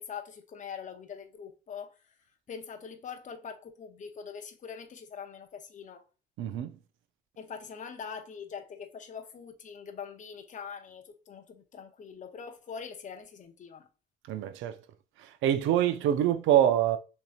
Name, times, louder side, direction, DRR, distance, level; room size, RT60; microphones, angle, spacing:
voice 1, 0.0-1.9 2.5-6.0 7.4-13.9, left 6 dB, 40° left, 0.6 m, -43 dB
voice 2, 6.4-6.7 14.3-14.8 15.2-17.0, right 11 dB, 80° right, 0.4 m, -25 dB
3.0 x 2.7 x 2.3 m
cardioid pair, 90°, 20 cm